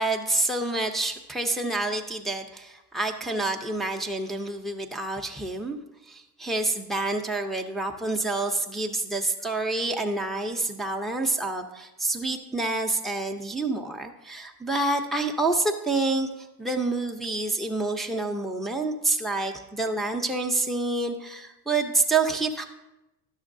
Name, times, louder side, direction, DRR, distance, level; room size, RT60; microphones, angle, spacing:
voice 1, 0.0-5.8 6.0-22.7, right 2 dB, ahead, 2 dB, 0.6 m, -28 dB
11.0 x 6.4 x 2.6 m, 0.94 s
hypercardioid pair, 80°, 47 cm